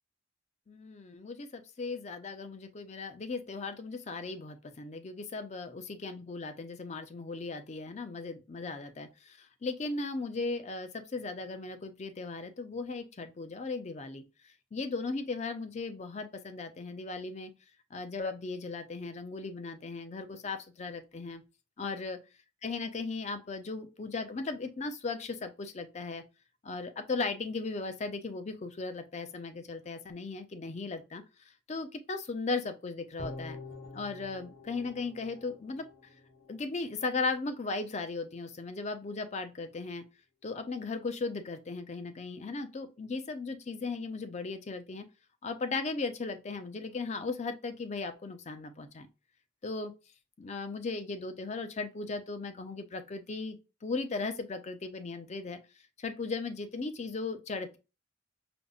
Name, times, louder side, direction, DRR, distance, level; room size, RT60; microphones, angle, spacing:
voice 1, 0.7-14.2 14.7-17.5 17.9-21.4 21.8-22.2 22.6-26.2 26.6-31.2 31.7-33.6 33.9-35.9 36.5-40.0 40.4-45.0 45.4-49.1 49.6-49.9 50.4-55.6 56.0-57.8, left 3 dB, 35° left, 0.4 m, -37 dB
sound 1, 33.2-36.5 36.9-37.0, left 2 dB, 75° left, 1.5 m, -46 dB
5.0 x 2.0 x 2.3 m
head